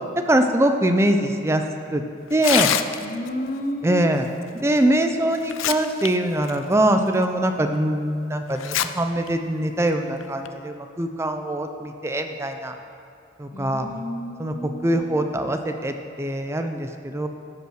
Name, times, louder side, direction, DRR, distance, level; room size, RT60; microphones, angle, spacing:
voice 1, 0.3-1.6 1.9-2.0 2.3-2.7 3.8-4.3 4.6-12.7 13.4-13.9 14.4-17.3, right 1 dB, 15° right, 6 dB, 0.4 m, -23 dB
Tearing, 2.3-3.3 4.8-4.9 5.3-6.1 6.4-6.6 7.2-7.3 8.6-8.9 9.3-9.4 10.2-10.5, left 10 dB, 85° left, 0.5 m, -24 dB
voice 2, 3.0-4.1 13.5-15.2, equal, 45° left, 7 dB, 0.6 m, -32 dB
16.0 x 5.5 x 6.3 m, 2.6 s
head